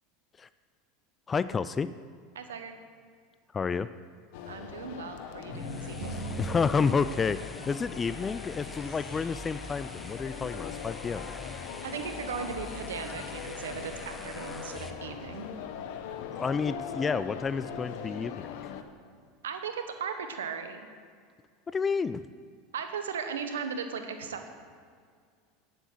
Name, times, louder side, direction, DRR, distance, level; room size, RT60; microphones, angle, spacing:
voice 1, 1.3-1.9 3.5-3.9 6.4-7.4 7.7-11.3 16.2-18.5 21.7-22.3, left 5 dB, 25° left, 14 dB, 0.3 m, -30 dB
voice 2, 2.3-2.8 4.5-6.2 11.8-15.5 19.4-20.9 22.7-24.5, right 6 dB, 90° right, 7 dB, 1.0 m, -37 dB
sound 1, 4.3-18.8, left 8 dB, 70° left, 0.8 m, -41 dB
sound 2, 5.4-18.5, right 2 dB, 45° right, 2.7 m, -47 dB
sound 3, 5.5-14.9, left 1 dB, 5° left, 0.9 m, -44 dB
9.2 x 7.9 x 6.3 m, 2.1 s
hypercardioid pair, 95°, 0 cm